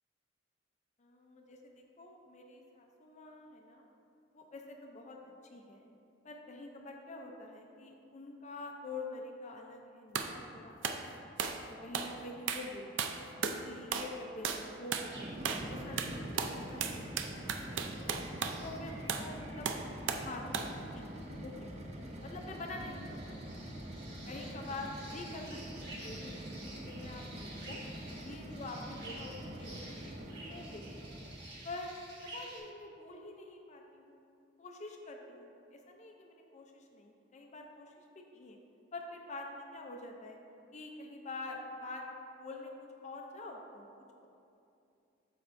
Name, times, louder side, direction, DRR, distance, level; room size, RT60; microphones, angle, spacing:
voice 1, 1.0-3.9 4.3-5.9 6.2-11.3 11.8-13.1 13.6-18.2 18.6-19.7 20.1-20.6 20.9-21.0 21.4-21.7 22.2-23.7 24.3-27.8 28.2-29.3 29.6-30.9 31.6-31.9 32.2-34.2 34.6-38.6 38.9-40.4 40.7-42.0 42.4-43.9, left 2 dB, 40° left, 2 dB, 0.5 m, -46 dB
sound 1, 10.2-10.3 10.8-11.0 11.4-11.6 11.9-12.1 12.5-12.7 13.0-13.6 13.9-14.2 14.4-14.7 14.9-15.1 15.5-15.7 16.0-18.6 19.1-19.3 19.7-20.3 20.5-20.8, right 6 dB, 80° right, 0.5 m, -35 dB
sound 2, 15.0-31.5, right 1 dB, 35° right, 0.6 m, -45 dB
sound 3, 15.1-15.6 16.0-16.8 17.2-18.1 18.4-32.6, right 2 dB, 60° right, 1.4 m, -52 dB
12.5 x 4.4 x 2.6 m, 2.6 s
head